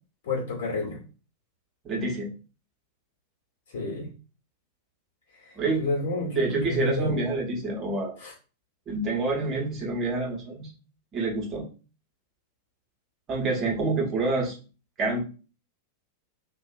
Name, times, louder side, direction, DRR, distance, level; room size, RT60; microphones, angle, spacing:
voice 1, 0.2-1.0 3.7-4.1 5.4-7.2 8.2-8.3, left 2 dB, 55° left, -2 dB, 1.2 m, -30 dB
voice 2, 1.8-2.3 5.6-5.8 6.3-8.1 8.9-10.7 11.1-11.6 13.3-14.5 15.0-15.2, right 3 dB, 30° right, -1 dB, 1.0 m, -27 dB
2.6 x 2.4 x 2.4 m, 0.34 s
figure-of-eight pair, 90°, 0 cm